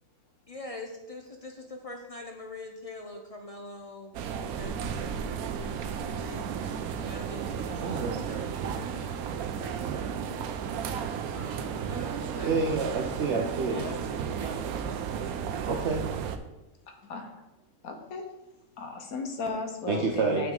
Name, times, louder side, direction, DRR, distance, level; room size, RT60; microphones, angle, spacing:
voice 1, 0.5-4.2 4.6-6.6 7.0-9.3 9.6-10.5 11.3-12.9 13.7-14.0 14.3-14.6, left 2 dB, 45° left, 2 dB, 0.5 m, -44 dB
sound 1, 4.1-16.4, right 7 dB, 90° right, 1.1 m, -34 dB
voice 2, 7.8-8.2 12.4-13.8 15.7-16.0 19.9-20.5, right 4 dB, 60° right, 1 dB, 0.9 m, -28 dB
voice 3, 16.9-17.4 17.8-18.2 18.8-20.5, left 4 dB, 80° left, 4 dB, 1.4 m, -36 dB
7.2 x 6.1 x 3.7 m, 0.97 s
omnidirectional pair, 1.5 m